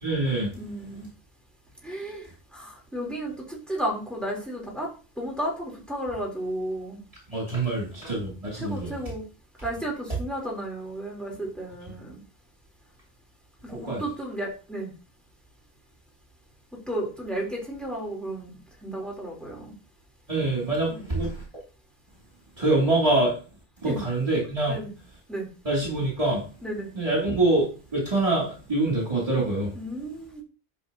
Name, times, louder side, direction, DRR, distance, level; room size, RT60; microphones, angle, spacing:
voice 1, 0.0-0.5 7.3-9.0 13.7-14.0 20.3-21.4 22.6-23.4 23.8-24.8 25.6-26.4 26.9-27.6 27.9-29.7, right 2 dB, 35° right, -5 dB, 2.9 m, -25 dB
voice 2, 0.6-1.1 1.8-4.9 5.2-7.0 8.6-9.2 9.6-12.2 13.6-14.9 16.9-18.5 18.8-19.7 20.9-21.0 23.8-24.0 24.7-24.9 25.3-25.5 26.6-26.9 29.8-30.4, right 1 dB, ahead, -2 dB, 3.5 m, -33 dB
11.0 x 6.2 x 2.9 m, 0.34 s
omnidirectional pair, 1.1 m